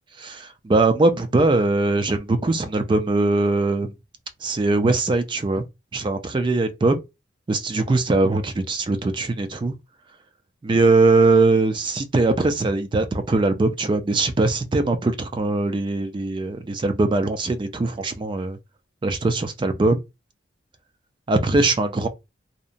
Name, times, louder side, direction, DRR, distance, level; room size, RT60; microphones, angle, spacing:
voice 1, 0.2-3.9 4.4-5.6 5.9-7.0 7.5-9.7 10.6-18.6 19.0-19.9 21.3-22.1, right 2 dB, 25° right, 0.3 m, -21 dB
2.7 x 2.1 x 2.4 m
head